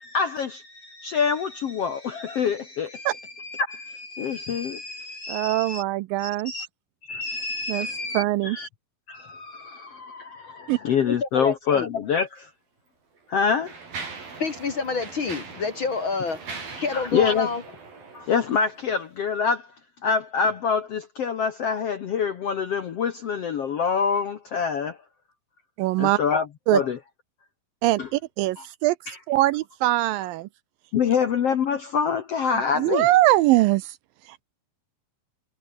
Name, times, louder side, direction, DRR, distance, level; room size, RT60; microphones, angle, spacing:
voice 1, 0.0-5.8 6.2-6.7 7.1-8.7 9.1-12.5 13.3-13.7 16.9-17.5 18.1-19.7 20.0-25.0 26.0-26.5 26.7-27.0 28.0-28.1 29.1-29.2 30.9-33.1, left 6 dB, 60° left, 1.7 m, -26 dB
voice 2, 5.3-6.5 7.7-7.9 8.1-8.6 10.7-10.8 25.8-26.2 26.7-26.8 27.8-29.0 29.3-30.5 32.8-34.0, right 17 dB, 80° right, 2.2 m, -22 dB
voice 3, 11.1-11.9 14.4-16.4 16.8-17.6, left 4 dB, 45° left, 1.9 m, -28 dB
Mechanisms, 12.3-12.4 13.2-18.9, right 4 dB, 65° right, 8.2 m, -40 dB
omnidirectional pair, 4.4 m